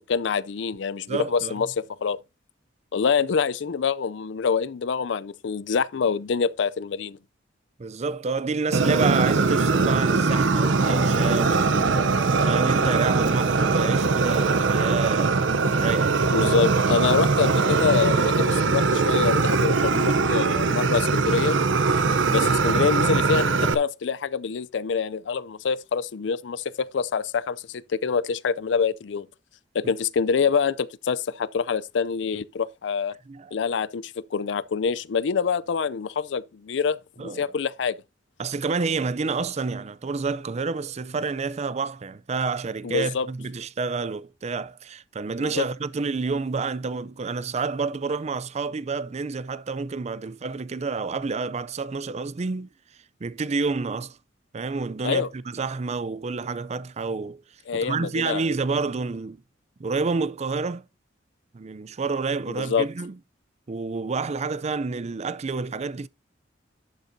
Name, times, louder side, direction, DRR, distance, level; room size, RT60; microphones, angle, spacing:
voice 1, 0.1-1.7 2.0-2.2 2.9-7.2 16.3-21.6 22.3-29.3 29.7-33.1 33.5-37.9 42.8-43.3 45.4-45.6 55.0-55.3 57.7-58.4 62.5-62.9, left 5 dB, 70° left, 0.4 m, -26 dB
voice 2, 1.1-1.6 7.8-11.9 12.5-15.4 15.8-16.2 29.8-29.9 33.3-33.5 37.2-37.4 38.4-52.7 53.2-54.2 54.5-57.4 57.7-59.4 59.8-60.9 61.5-63.2 63.7-66.1, right 4 dB, 35° right, 0.4 m, -29 dB
sound 1, 8.7-14.1, left 1 dB, ahead, 1.7 m, -38 dB
Fire, 8.7-23.7, right 4 dB, 85° right, 0.7 m, -21 dB
11.5 x 6.5 x 2.7 m
head